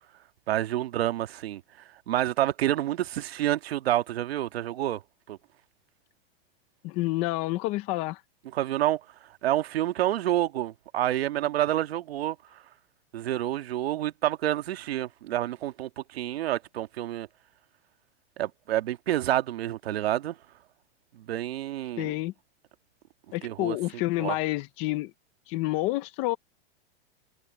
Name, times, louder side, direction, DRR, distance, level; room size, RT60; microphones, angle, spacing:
voice 1, 0.5-1.6 2.1-5.0 5.3-5.4 8.5-9.0 9.4-12.4 13.1-17.3 18.4-20.3 21.1-22.1 23.4-23.8 24.2-24.3, right 13 dB, 80° right, 1.6 m, -28 dB
voice 2, 6.8-8.2 22.0-22.3 23.3-25.1 25.5-26.4, left 18 dB, 20° left, 0.5 m, -29 dB
supercardioid pair, 170°, 30 cm